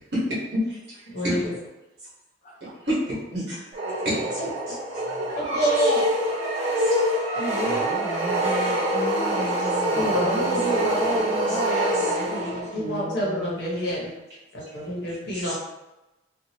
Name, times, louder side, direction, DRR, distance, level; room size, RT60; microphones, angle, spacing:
voice 1, 0.5-1.4 2.6-3.6 4.0-4.4 4.7-4.8 5.1-5.2 6.8-7.0 11.5-12.1 14.7-14.8 15.3-15.6, equal, 60° right, -7 dB, 1.3 m, -30 dB
sound 1, 3.7-12.8, right 1 dB, 30° right, 0.7 m, -25 dB
voice 2, 5.3-6.1 7.4-7.8 9.3-9.4 9.9-14.1 14.5-15.6, equal, 60° left, -5 dB, 1.1 m, -27 dB
voice 3, 7.6-10.9 11.5-12.3 12.7-13.9, equal, 40° left, -2 dB, 0.5 m, -36 dB
2.8 x 2.5 x 2.8 m, 1.0 s
head